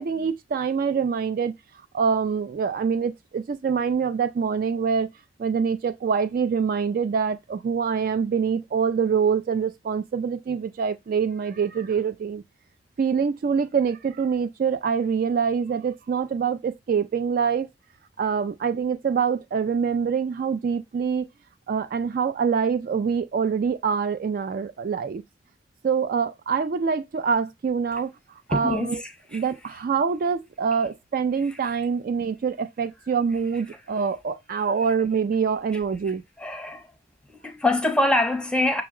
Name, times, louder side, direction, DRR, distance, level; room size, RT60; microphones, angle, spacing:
voice 1, 0.0-1.5 1.9-5.1 5.4-12.4 13.0-17.7 18.2-21.3 21.7-25.2 25.8-28.1 28.5-29.0 29.3-36.2, right 6 dB, 50° right, 0.3 m, -25 dB
voice 2, 28.5-29.4 36.4-36.9 37.3-38.8, left 2 dB, 5° left, 0.6 m, -24 dB
5.9 x 2.0 x 3.6 m
head